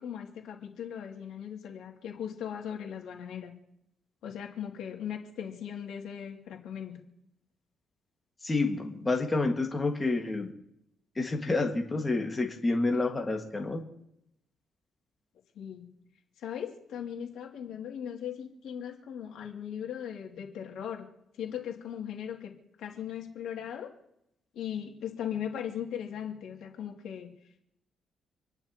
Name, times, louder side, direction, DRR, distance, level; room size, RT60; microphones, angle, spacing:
voice 1, 0.0-3.5 4.2-7.0 15.6-15.8 16.4-21.1 21.4-22.5 22.8-23.9 24.5-27.3, left 9 dB, 80° left, 1 dB, 2.6 m, -38 dB
voice 2, 8.4-10.5 11.2-13.8, left 3 dB, 20° left, 2 dB, 1.9 m, -29 dB
28.0 x 10.5 x 3.0 m, 0.78 s
cardioid pair, 90°, 0 cm